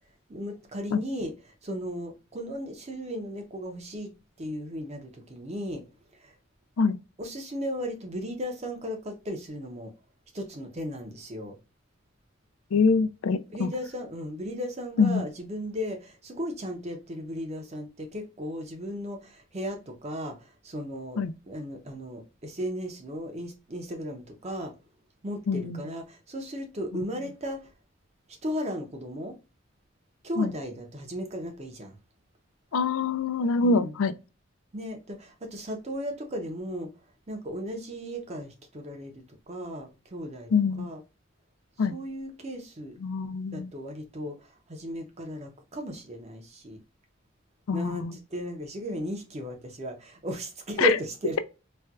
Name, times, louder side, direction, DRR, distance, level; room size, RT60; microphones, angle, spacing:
voice 1, 0.3-1.3 1.6-4.1 4.4-5.8 6.1-6.3 7.2-9.9 10.3-11.6 13.5-24.7 25.2-27.7 28.4-29.4 30.2-32.0 33.6-34.0 34.7-36.9 37.3-40.5 40.8-41.0 41.9-43.0 43.5-46.8 47.7-51.4, equal, 30° right, 0.7 m, -35 dB
voice 2, 12.7-13.7 15.0-15.2 21.2-21.3 25.5-25.8 30.4-30.5 32.7-34.1 40.5-40.9 41.8-42.0 43.0-43.7 47.7-48.2 50.8-50.9, left 4 dB, 85° left, 0.4 m, -25 dB
4.2 x 2.2 x 2.3 m
head